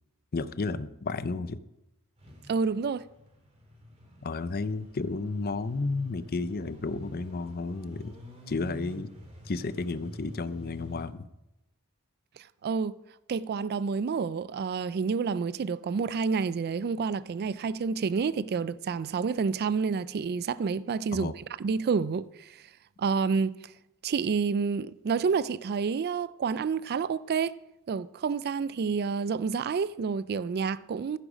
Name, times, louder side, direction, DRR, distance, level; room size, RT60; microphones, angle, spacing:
voice 1, 0.3-1.6 4.2-8.2 8.5-9.1 9.4-11.3 21.1-21.3, left 3 dB, 45° left, 0.6 m, -32 dB
sound 1, 2.2-11.1, left 1 dB, 30° right, 3.1 m, -47 dB
voice 2, 2.5-3.0 12.4-13.0 13.3-21.3 21.6-22.6 23.0-23.7 24.0-27.5 27.9-31.2, right 5 dB, 45° right, 0.3 m, -29 dB
15.0 x 10.0 x 5.0 m
head